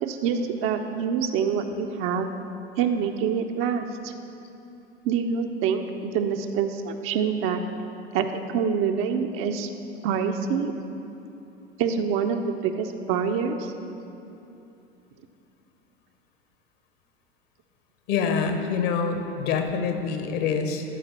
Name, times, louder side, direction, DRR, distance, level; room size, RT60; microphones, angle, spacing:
voice 1, 0.0-2.3 2.8-4.1 5.0-7.6 8.1-9.7 10.0-10.7 11.8-13.7, right 6 dB, 40° right, 6 dB, 0.7 m, -26 dB
voice 2, 18.1-20.8, left 6 dB, 55° left, 5 dB, 1.2 m, -26 dB
13.0 x 5.0 x 6.1 m, 2.9 s
figure-of-eight pair, 80°, 32 cm